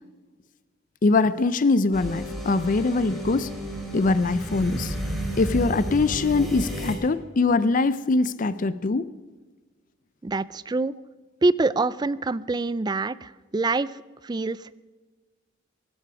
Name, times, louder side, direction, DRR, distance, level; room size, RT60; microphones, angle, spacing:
voice 1, 1.0-3.5 3.9-4.9 5.4-9.1, left 3 dB, 40° left, 15 dB, 0.5 m, -22 dB
sound 1, 1.9-6.9, right 1 dB, ahead, 3.8 m, -32 dB
voice 2, 10.2-10.9 11.4-14.0 14.2-14.6, right 3 dB, 20° right, 18 dB, 0.4 m, -25 dB
19.5 x 12.0 x 5.9 m, 1.4 s
head